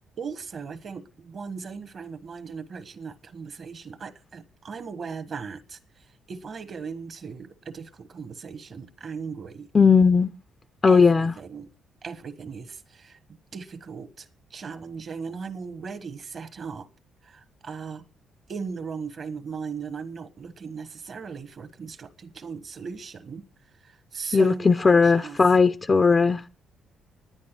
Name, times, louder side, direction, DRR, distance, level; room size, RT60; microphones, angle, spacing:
voice 1, 0.2-9.7 10.8-11.7 12.0-13.2 13.5-16.9 17.2-18.0 18.5-23.5 23.8-25.4, right 5 dB, 45° right, 1.3 m, -38 dB
voice 2, 9.7-10.3 10.8-11.3 24.3-26.5, left 5 dB, 30° left, 0.5 m, -18 dB
11.0 x 9.8 x 6.1 m
cardioid pair, 95°, 0 cm